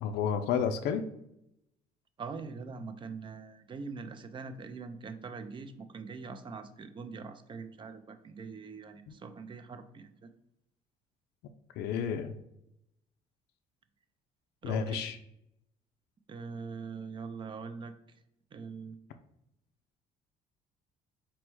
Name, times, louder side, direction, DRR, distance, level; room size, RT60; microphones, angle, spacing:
voice 1, 0.0-1.0 11.8-12.3 14.6-15.2, left 7 dB, 75° left, 7 dB, 0.4 m, -31 dB
voice 2, 2.2-10.3 14.6-15.0 16.3-17.9 18.5-19.0, right 5 dB, 30° right, 10 dB, 0.4 m, -43 dB
4.3 x 2.1 x 4.5 m, 0.80 s
cardioid pair, 110°, 17 cm